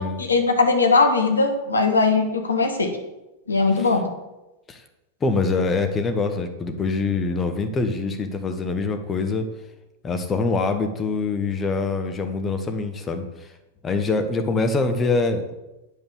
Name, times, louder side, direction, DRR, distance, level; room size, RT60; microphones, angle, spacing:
voice 1, 0.2-3.0 3.5-4.1, left 3 dB, 75° left, 4 dB, 1.4 m, -19 dB
voice 2, 5.2-9.5 10.0-13.5 13.8-15.5, left 3 dB, 20° left, 7 dB, 1.2 m, -24 dB
8.9 x 5.5 x 7.2 m, 1.0 s
figure-of-eight pair, 90°, 0 cm